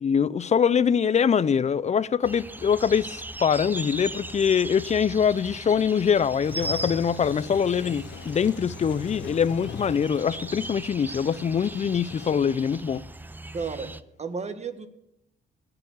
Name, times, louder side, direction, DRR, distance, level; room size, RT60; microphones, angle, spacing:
voice 1, 0.0-13.0, left 7 dB, 35° left, 0.5 m, -23 dB
sound 1, 2.2-14.0, right 2 dB, 10° right, 0.6 m, -39 dB
Toilet flush, 6.4-12.8, left 9 dB, 65° left, 1.0 m, -42 dB
voice 2, 13.5-13.9 14.2-14.9, right 5 dB, 35° right, 1.6 m, -32 dB
17.0 x 7.0 x 7.9 m
cardioid pair, 90°, 20 cm